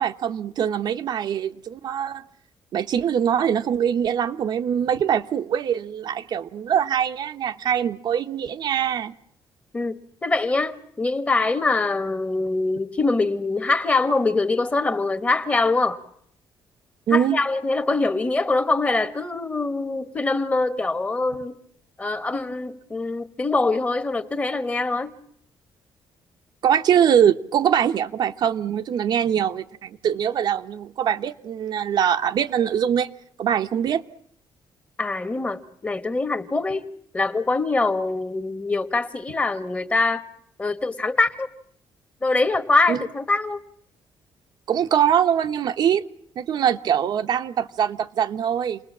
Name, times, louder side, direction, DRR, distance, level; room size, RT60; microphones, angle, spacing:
voice 1, 0.0-2.2 2.7-9.1 17.1-17.4 26.6-33.1 33.4-34.0 42.9-43.0 44.7-46.0 46.4-48.8, right 9 dB, 55° right, 1.0 m, -23 dB
voice 2, 9.7-16.0 17.1-21.6 22.0-25.1 35.0-36.9 37.1-40.2 40.6-41.5 42.2-43.6, left 3 dB, 15° left, 1.5 m, -23 dB
29.0 x 20.5 x 7.4 m
cardioid pair, 145°, 8 cm